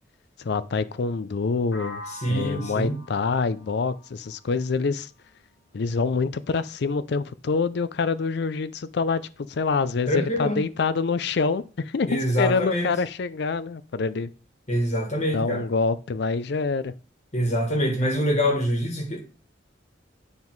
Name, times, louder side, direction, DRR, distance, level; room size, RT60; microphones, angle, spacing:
voice 1, 0.4-2.0 2.3-5.1 5.7-14.3 15.3-16.9, left 4 dB, 65° left, 0.4 m, -26 dB
sound 1, 1.7-5.6, left 2 dB, 80° left, 1.4 m, -44 dB
voice 2, 2.2-3.0 10.1-10.6 12.1-12.9 14.7-15.6 17.3-19.2, equal, 40° left, 1.7 m, -25 dB
9.5 x 3.7 x 4.6 m
head